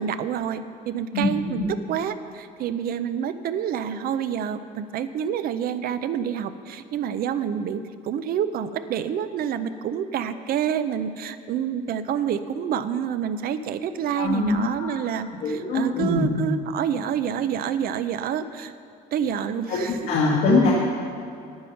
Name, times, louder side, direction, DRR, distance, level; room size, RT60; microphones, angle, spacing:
voice 1, 0.0-18.7 19.1-20.2, right 8 dB, 60° right, 11 dB, 0.6 m, -28 dB
voice 2, 1.1-1.7 14.1-14.9 15.4-16.3 19.7-20.7, left 3 dB, 80° left, -5 dB, 1.8 m, -23 dB
9.6 x 9.3 x 5.7 m, 2.4 s
cardioid pair, 110°, 17 cm